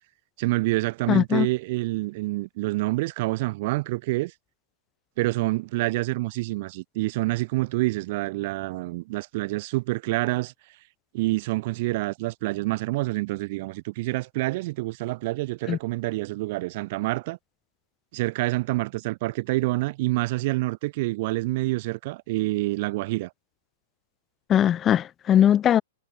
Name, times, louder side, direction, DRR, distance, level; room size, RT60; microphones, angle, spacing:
voice 1, 0.4-4.3 5.2-10.5 11.1-17.4 18.1-23.3, right 21 dB, 50° right, 3.9 m, -27 dB
voice 2, 1.1-1.5 15.7-15.8 24.5-25.8, left 10 dB, 25° left, 0.5 m, -20 dB
figure-of-eight pair, 110°, 0 cm